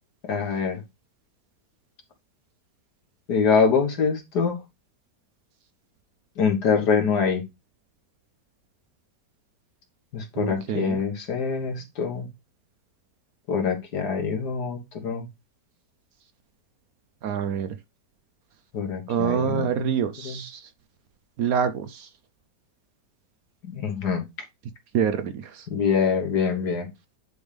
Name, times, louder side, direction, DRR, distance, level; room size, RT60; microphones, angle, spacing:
voice 1, 0.3-0.8 3.3-4.6 6.4-7.4 10.1-12.3 13.5-15.3 18.7-20.0 20.2-20.4 23.6-24.2 25.7-26.9, left 5 dB, 70° left, 2.0 m, -24 dB
voice 2, 10.4-11.0 17.2-17.7 19.1-20.7 21.4-22.1 24.9-25.7, right 8 dB, 65° right, 1.0 m, -26 dB
10.0 x 3.5 x 3.4 m
omnidirectional pair, 1.8 m